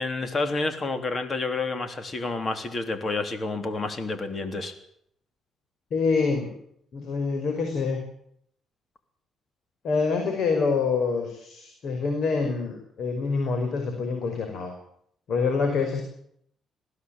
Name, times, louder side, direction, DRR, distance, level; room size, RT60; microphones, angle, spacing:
voice 1, 0.0-4.7, left 3 dB, 40° left, 8 dB, 3.4 m, -29 dB
voice 2, 5.9-6.5 6.9-8.0 9.8-14.7 15.3-16.0, left 4 dB, 65° left, 4 dB, 5.3 m, -26 dB
20.5 x 16.0 x 9.0 m, 0.69 s
cardioid pair, 90°, 0 cm